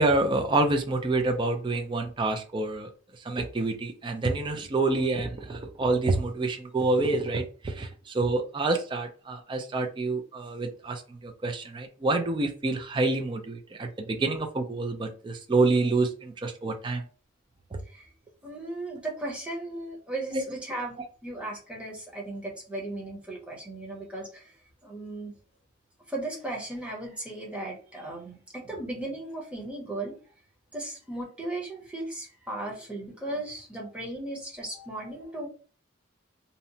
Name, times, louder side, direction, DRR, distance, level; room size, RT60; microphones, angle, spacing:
voice 1, 0.0-2.9 3.2-17.0 17.7-17.8 20.3-20.4, right 2 dB, 25° right, 4 dB, 0.3 m, -27 dB
voice 2, 18.4-21.0 21.2-24.5 24.8-25.3 26.1-30.2 30.7-35.5, right 2 dB, 5° right, -2 dB, 0.7 m, -36 dB
2.7 x 2.1 x 2.6 m, 0.39 s
head